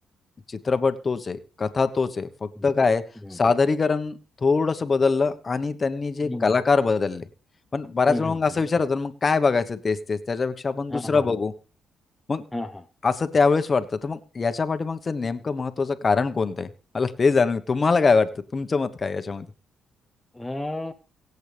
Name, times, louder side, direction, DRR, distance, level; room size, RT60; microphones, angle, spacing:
voice 1, 0.5-3.0 3.3-7.3 7.7-11.5 12.3-12.4 13.0-16.7 16.9-19.5, left 4 dB, 35° left, 10 dB, 1.1 m, -23 dB
voice 2, 8.1-8.4 10.9-11.3 12.5-12.8 20.3-20.9, left 1 dB, 10° left, 4 dB, 0.8 m, -32 dB
24.0 x 8.1 x 3.4 m, 0.35 s
cardioid pair, 90°, 0 cm